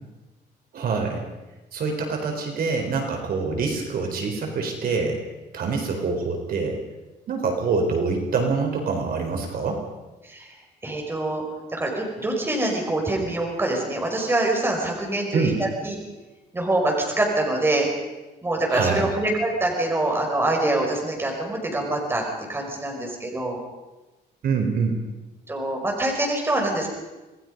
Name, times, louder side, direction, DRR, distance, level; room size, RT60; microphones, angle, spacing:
voice 1, 0.7-1.3 1.7-5.2 5.5-6.8 7.3-9.8 15.3-15.6 18.7-19.0 24.4-25.0, right 4 dB, 55° right, 2 dB, 4.3 m, -25 dB
voice 2, 10.8-11.4 11.7-16.0 16.5-17.9 18.4-22.2 22.5-23.6 25.5-26.9, right 2 dB, 10° right, 0 dB, 5.5 m, -25 dB
27.5 x 20.0 x 5.4 m, 1.1 s
cardioid pair, 145°, 18 cm